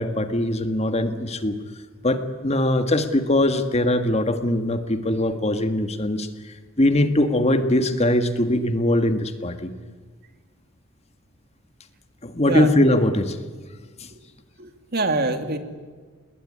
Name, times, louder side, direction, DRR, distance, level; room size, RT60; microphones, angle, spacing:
voice 1, 0.0-1.5 2.0-6.3 6.8-9.7 12.2-13.4 14.0-14.1, left 1 dB, 30° left, 8 dB, 1.7 m, -21 dB
voice 2, 14.6-15.6, right 2 dB, 50° right, 7 dB, 2.6 m, -24 dB
29.0 x 20.5 x 9.9 m, 1.5 s
head